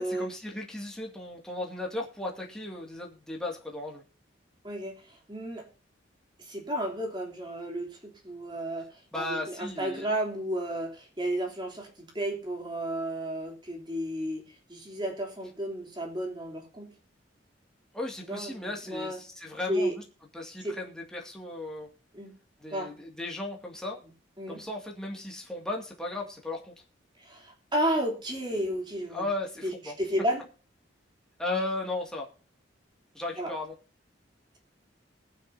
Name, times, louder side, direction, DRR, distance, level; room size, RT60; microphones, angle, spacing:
voice 1, 0.0-4.0 9.1-10.1 17.9-20.0 20.3-21.9 22.6-24.0 24.5-26.8 29.1-29.9 31.4-32.3 33.1-33.7, left 2 dB, 5° left, -2 dB, 2.2 m, -36 dB
voice 2, 4.6-5.7 6.4-16.9 18.3-19.2 19.7-19.9 20.6-20.8 22.1-22.3 22.7-22.9 24.4-24.6 27.2-29.3 29.6-30.5 33.4-33.5, right 1 dB, 25° right, 1 dB, 3.1 m, -32 dB
20.5 x 9.5 x 2.7 m, 0.35 s
head